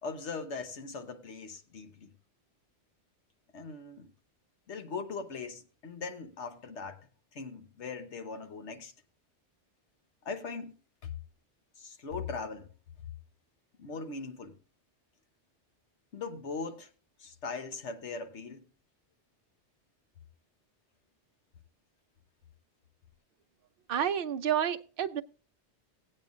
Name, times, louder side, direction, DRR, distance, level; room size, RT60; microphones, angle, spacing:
voice 1, 0.0-2.1 3.5-4.1 4.7-8.9 10.2-10.7 11.8-12.7 13.8-14.6 16.1-16.9 17.2-18.7, left 4 dB, 90° left, 1.3 m, -40 dB
voice 2, 23.9-25.2, right 9 dB, 60° right, 0.8 m, -30 dB
17.5 x 8.8 x 2.5 m
omnidirectional pair, 1.1 m